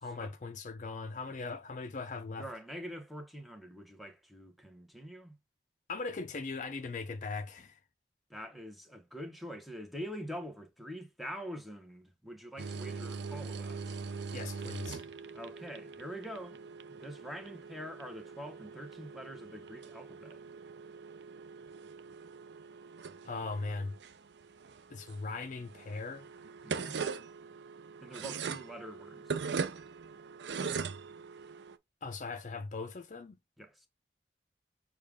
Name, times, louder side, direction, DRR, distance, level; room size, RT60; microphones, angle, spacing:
voice 1, 0.0-2.5 5.9-7.8 14.3-15.0 23.2-23.9 24.9-26.3 32.0-33.4, left 3 dB, 45° left, 0.4 m, -39 dB
voice 2, 2.4-5.3 8.3-14.0 15.3-16.6 16.9-20.4 26.6-27.0 28.0-29.4 33.6-33.9, equal, ahead, 0.9 m, -45 dB
sound 1, 12.6-31.8, right 5 dB, 85° right, 0.6 m, -42 dB
6.5 x 2.3 x 3.5 m
head